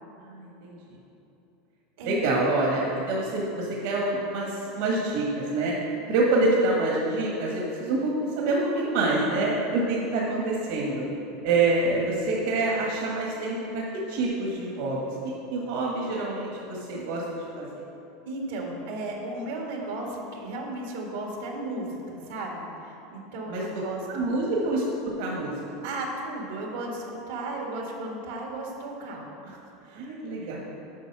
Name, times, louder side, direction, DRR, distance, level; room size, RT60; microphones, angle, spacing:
voice 1, 0.2-0.8 2.0-5.7 6.1-11.0 11.4-13.8 14.1-17.7 23.5-23.6 24.1-24.8 25.2-25.5 29.9-30.6, right 2 dB, 70° right, -3 dB, 1.6 m, -26 dB
voice 2, 6.0-6.4 18.3-24.0 25.8-30.0, right 2 dB, 85° right, -1 dB, 1.7 m, -35 dB
8.1 x 5.3 x 6.1 m, 2.9 s
supercardioid pair, 140°, 0 cm